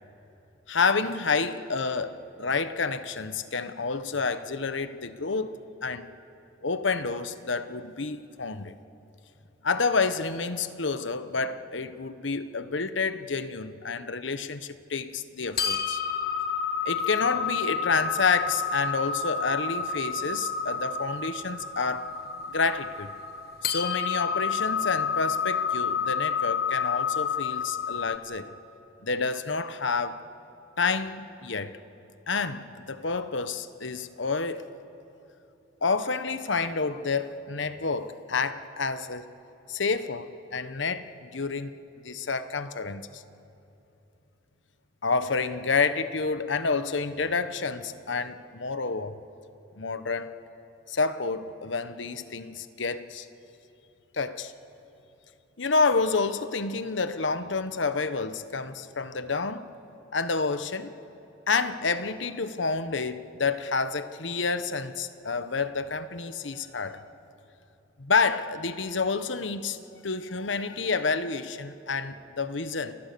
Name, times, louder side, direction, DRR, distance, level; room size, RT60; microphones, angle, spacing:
voice 1, 0.7-6.1 6.6-8.8 9.6-16.0 16.8-22.2 22.5-23.1 23.6-28.5 29.0-30.2 30.8-31.7 32.3-34.6 35.8-39.3 39.7-41.7 42.0-43.2 45.0-49.2 49.8-50.3 50.9-53.3 54.1-54.5 55.6-59.7 60.1-60.9 61.5-67.0 68.0-69.8 70.0-73.0, left 4 dB, 75° left, 1.2 m, -29 dB
sound 1, 15.6-28.2, left 6 dB, 55° left, 1.4 m, -30 dB
29.5 x 29.5 x 6.9 m
head